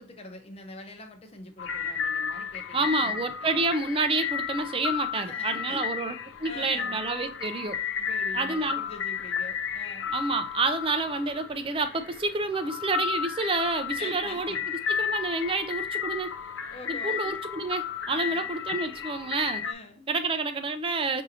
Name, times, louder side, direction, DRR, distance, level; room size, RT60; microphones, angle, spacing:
voice 1, 0.0-3.7 5.1-6.0 6.4-7.0 8.0-10.1 14.0-14.7 16.7-17.3 18.1-18.5 19.6-20.1, left 2 dB, 30° left, 0.7 m, -44 dB
sound 1, 1.6-19.7, left 7 dB, 70° left, 0.5 m, -33 dB
voice 2, 2.7-7.8 8.3-8.8 10.1-14.6 14.9-16.3 16.9-19.7 20.1-21.2, right 3 dB, 25° right, 0.4 m, -29 dB
6.2 x 2.7 x 2.7 m
head